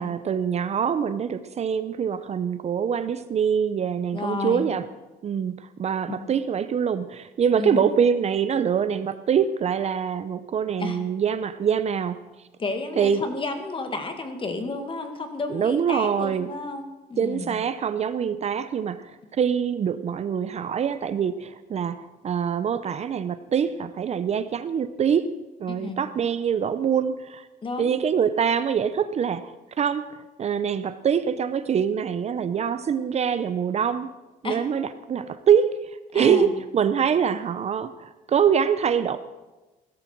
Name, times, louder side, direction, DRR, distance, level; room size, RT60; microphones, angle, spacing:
voice 1, 0.0-4.9 5.2-12.2 13.0-13.4 15.5-16.5 17.2-25.3 25.6-27.5 27.8-34.1 34.4-39.2, right 7 dB, 40° right, 13 dB, 0.7 m, -24 dB
voice 2, 4.1-4.7 6.1-6.2 7.6-7.8 10.8-11.0 12.6-16.8 17.1-17.5 25.7-26.0 27.6-28.0 34.4-34.6 36.1-36.5, left 3 dB, 30° left, 6 dB, 2.1 m, -31 dB
16.0 x 13.0 x 4.6 m, 1.1 s
cardioid pair, 110°, 17 cm